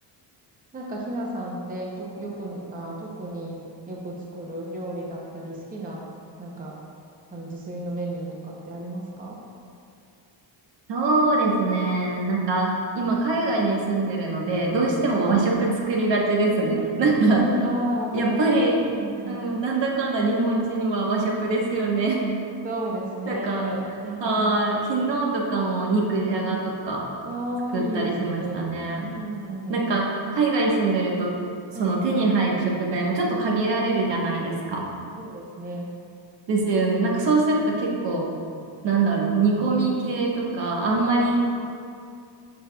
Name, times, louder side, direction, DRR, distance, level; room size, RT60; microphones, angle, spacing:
voice 1, 0.7-6.0 6.4-6.8 7.3-9.4 15.0-15.1 16.6-18.6 18.9-19.5 21.9-22.0 22.6-24.5 26.2-26.6 27.2-28.7 29.1-29.8 31.7-32.1 35.1-35.9 37.6-37.8 40.8-41.4, right 1 dB, 20° right, -2 dB, 0.7 m, -33 dB
voice 2, 10.9-17.4 18.1-18.8 19.3-22.2 23.3-23.7 24.2-27.0 27.7-29.1 29.7-31.4 31.8-34.9 36.5-38.3 38.8-41.4, right 3 dB, 70° right, -2 dB, 1.3 m, -23 dB
9.8 x 5.8 x 2.3 m, 2.4 s
cardioid pair, 170°, 45 cm